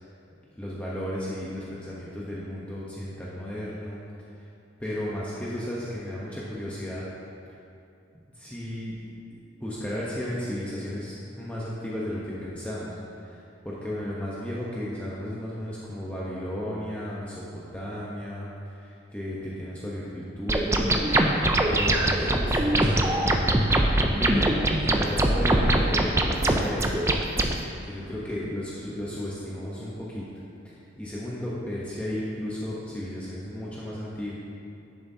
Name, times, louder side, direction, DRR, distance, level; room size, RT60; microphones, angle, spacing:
voice 1, 0.5-4.0 4.8-7.1 8.3-9.0 9.3-12.9 13.2-21.0 21.7-23.2 24.2-24.5 24.8-27.2 27.8-30.2 31.0-34.3, left 1 dB, 5° left, -7 dB, 0.8 m, -34 dB
sound 1, 20.5-27.5, right 1 dB, 15° right, 0.4 m, -22 dB
11.0 x 7.1 x 2.7 m, 2.6 s
head